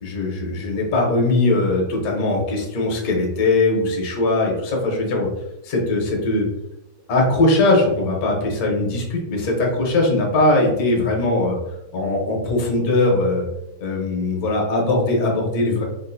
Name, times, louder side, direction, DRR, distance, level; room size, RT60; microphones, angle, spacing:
voice 1, 0.0-5.3 5.6-6.5 7.1-11.6 11.9-13.4 13.8-15.8, left 2 dB, 60° left, -1 dB, 1.1 m, -20 dB
3.7 x 2.4 x 2.5 m, 0.88 s
omnidirectional pair, 2.1 m